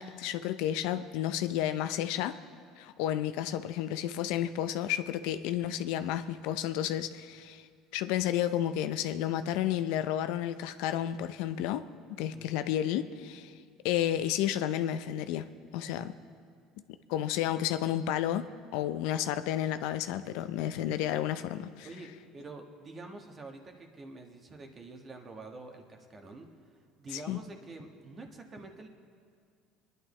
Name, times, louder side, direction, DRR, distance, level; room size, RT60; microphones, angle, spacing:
voice 1, 0.0-2.4 2.8-7.7 7.9-11.9 12.2-13.6 13.8-16.1 17.1-21.9 27.1-27.4, left 11 dB, 80° left, 11 dB, 0.5 m, -31 dB
voice 2, 21.8-26.5 27.0-28.9, right 2 dB, 30° right, 3 dB, 1.5 m, -47 dB
25.5 x 11.0 x 3.3 m, 2.2 s
cardioid pair, 125°, 0 cm